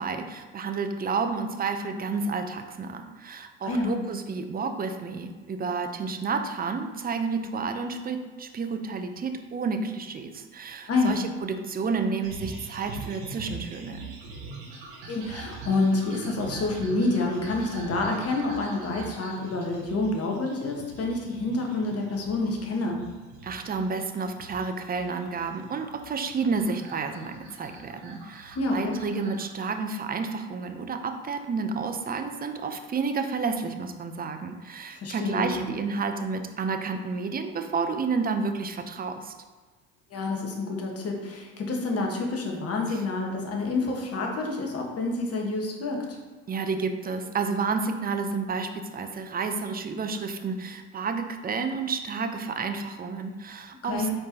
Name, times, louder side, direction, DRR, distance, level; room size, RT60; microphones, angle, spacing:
voice 1, 0.0-14.1 23.4-39.3 42.9-43.0 46.5-54.1, right 4 dB, 25° right, 7 dB, 0.5 m, -30 dB
sound 1, 12.2-29.5, right 3 dB, 70° right, 1.2 m, -43 dB
voice 2, 15.1-23.0 28.5-29.0 34.9-35.6 40.1-46.2 53.8-54.1, left 2 dB, 40° left, 1 dB, 1.2 m, -28 dB
4.4 x 4.4 x 2.7 m, 1.3 s
hypercardioid pair, 60°, 39 cm